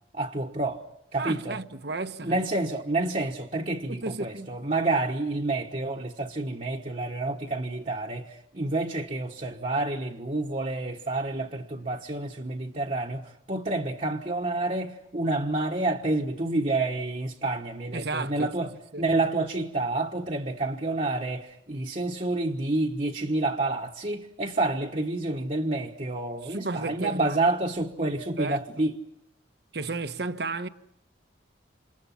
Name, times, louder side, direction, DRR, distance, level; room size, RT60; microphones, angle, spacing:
voice 1, 0.1-0.8 1.1-1.6 2.2-29.0, right 2 dB, 40° right, 1.3 m, -29 dB
voice 2, 1.2-2.4 3.9-4.5 17.9-18.5 18.9-19.0 26.5-27.4 28.4-28.6 29.7-30.7, right 3 dB, 60° right, 1.2 m, -33 dB
28.5 x 27.5 x 5.8 m
head